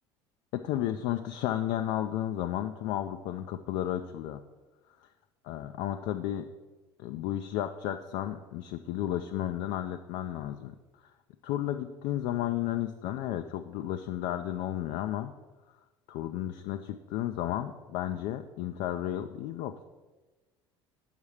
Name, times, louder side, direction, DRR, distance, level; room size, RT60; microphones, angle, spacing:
voice 1, 0.5-4.4 5.0-5.1 5.4-6.4 7.0-10.7 11.4-15.3 16.1-19.8, left 12 dB, 60° left, 7 dB, 0.4 m, -33 dB
7.3 x 5.5 x 4.8 m, 1.2 s
hypercardioid pair, 65°, 14 cm